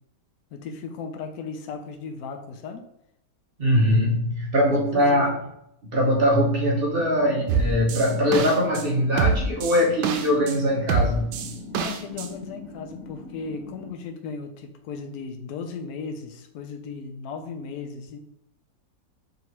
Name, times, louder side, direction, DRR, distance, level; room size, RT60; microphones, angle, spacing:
voice 1, 0.5-2.8 4.9-5.3 11.7-18.2, left 5 dB, 65° left, 4 dB, 1.0 m, -36 dB
voice 2, 3.6-5.4 5.8-11.3, equal, 55° right, -2 dB, 0.6 m, -22 dB
sound 1, 6.9-13.9, left 3 dB, 35° right, 1.6 m, -41 dB
sound 2, 7.5-8.8 9.2-10.6 10.9-12.3, right 5 dB, 85° right, 1.2 m, -25 dB
5.0 x 2.9 x 3.0 m, 0.80 s
omnidirectional pair, 1.9 m